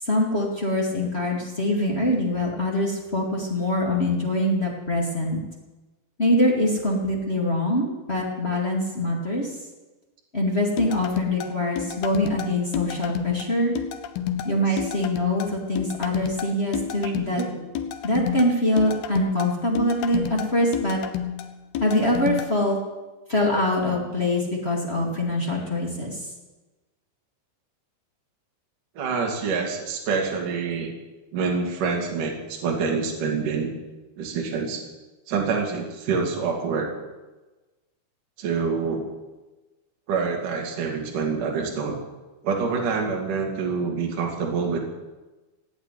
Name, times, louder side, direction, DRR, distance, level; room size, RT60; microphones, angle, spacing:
voice 1, 0.0-5.4 6.2-9.5 10.3-13.7 14.4-17.4 18.0-21.0 21.8-22.8 23.3-26.3, left 1 dB, 20° left, -2 dB, 1.7 m, -24 dB
sound 1, 10.8-22.5, left 9 dB, 75° left, 2.4 m, -31 dB
voice 2, 29.0-30.9 31.3-33.7 34.2-34.8 35.3-36.9 38.4-39.1 40.1-42.0 42.4-44.8, right 5 dB, 50° right, 0 dB, 3.7 m, -26 dB
16.5 x 9.0 x 9.6 m, 1.1 s
omnidirectional pair, 5.3 m